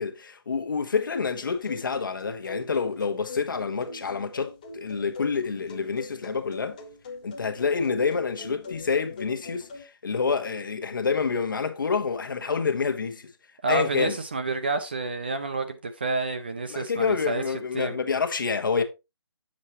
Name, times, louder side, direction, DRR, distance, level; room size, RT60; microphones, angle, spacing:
voice 1, 0.0-6.8 7.2-13.3 13.7-14.2 16.7-18.8, left 5 dB, 50° left, 1.3 m, -28 dB
sound 1, 1.4-9.8, left 3 dB, 20° left, 0.8 m, -42 dB
voice 2, 13.6-17.4 17.7-18.0, right 3 dB, 25° right, 0.5 m, -29 dB
8.0 x 7.5 x 3.0 m
hypercardioid pair, 175°, 14 cm